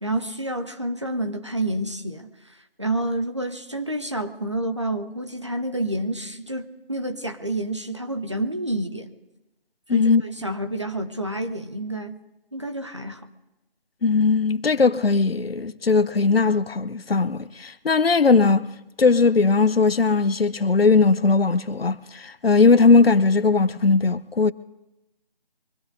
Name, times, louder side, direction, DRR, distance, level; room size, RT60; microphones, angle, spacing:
voice 1, 0.0-2.3 2.8-9.1 9.9-12.2 12.5-13.3, right 1 dB, 30° right, 0.8 m, -29 dB
voice 2, 9.9-10.2 14.0-18.7 19.0-24.5, left 4 dB, 80° left, 0.8 m, -19 dB
24.5 x 18.0 x 2.6 m
figure-of-eight pair, 175°, 29 cm